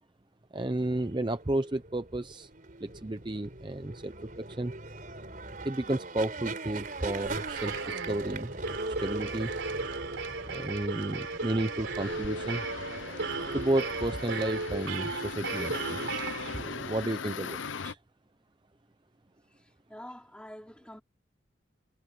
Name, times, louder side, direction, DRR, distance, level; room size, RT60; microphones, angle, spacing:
voice 1, 0.5-2.5 2.8-4.7 5.6-8.5 9.0-9.5 10.5-12.6 13.5-16.0 16.4-17.6 17.8-18.0, right 1 dB, 25° right, 0.6 m, -32 dB
sound 1, 0.8-14.4, right 2 dB, 45° right, 4.4 m, -42 dB
sound 2, 6.6-17.0, right 3 dB, 70° right, 3.7 m, -36 dB
sound 3, 12.0-17.9, left 5 dB, 75° left, 0.8 m, -40 dB
voice 2, 19.5-21.0, left 1 dB, 5° left, 3.2 m, -47 dB
head